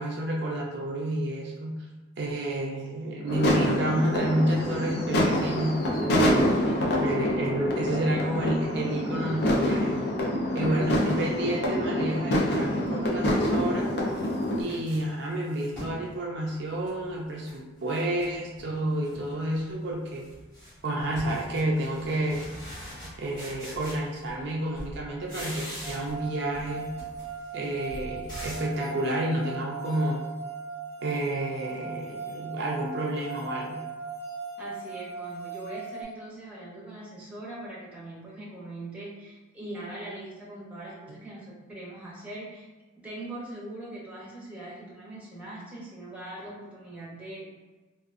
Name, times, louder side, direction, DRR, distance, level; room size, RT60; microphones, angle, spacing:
voice 1, 0.0-1.9 2.2-6.1 7.0-10.2 10.5-13.9 14.6-20.3 20.8-22.5 23.2-26.9 27.5-30.2 31.0-33.8 41.1-41.2, right 1 dB, 55° right, -2 dB, 0.4 m, -30 dB
sound 1, 3.3-14.6, equal, 50° left, 0.4 m, -26 dB
voice 2, 6.6-7.4 10.7-10.8 34.6-42.7 43.0-47.4, right 1 dB, 5° right, -6 dB, 0.7 m, -41 dB
sound 2, 13.2-16.0 16.5-17.6 17.9-18.7 19.0-19.5 19.8-24.5 24.7-26.3 26.5-28.8, equal, 20° left, 1.3 m, -43 dB
sound 3, 25.8-36.0, right 5 dB, 70° left, 1.4 m, -38 dB
3.6 x 2.4 x 2.4 m, 1.2 s
head